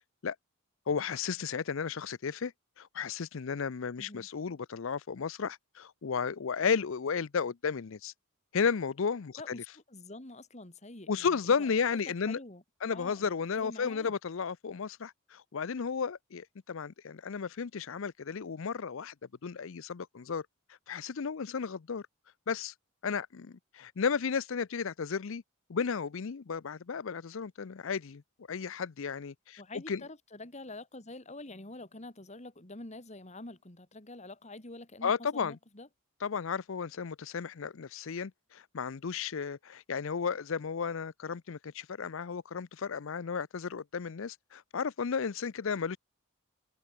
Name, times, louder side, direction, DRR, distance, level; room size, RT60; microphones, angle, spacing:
voice 1, 0.9-2.5 2.8-8.1 8.5-9.6 11.1-12.4 12.8-19.1 19.4-20.5 20.9-22.0 22.5-22.7 23.0-25.4 25.7-28.2 28.5-29.6 29.9-30.0 35.0-35.6 36.2-46.0, left 6 dB, 65° left, 0.5 m, -33 dB
voice 2, 4.0-4.3 9.4-12.0 12.3-12.6 12.9-13.3 13.6-14.1 29.6-35.9, left 2 dB, 30° left, 2.3 m, -46 dB
head